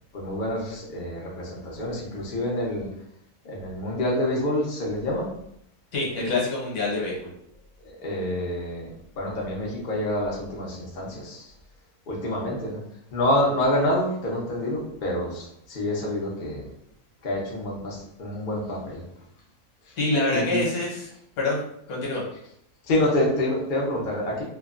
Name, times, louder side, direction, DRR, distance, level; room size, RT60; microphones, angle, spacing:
voice 1, 0.1-2.9 3.4-5.3 7.8-11.5 12.1-12.8 13.1-16.7 17.2-19.0 19.8-20.0 20.3-20.6 22.8-24.4, left 1 dB, 45° left, -4 dB, 0.6 m, -27 dB
voice 2, 5.9-7.3 20.0-21.1 21.4-21.6 21.9-22.2, left 2 dB, 70° left, -4 dB, 1.4 m, -26 dB
3.0 x 2.2 x 2.4 m, 0.73 s
omnidirectional pair, 1.7 m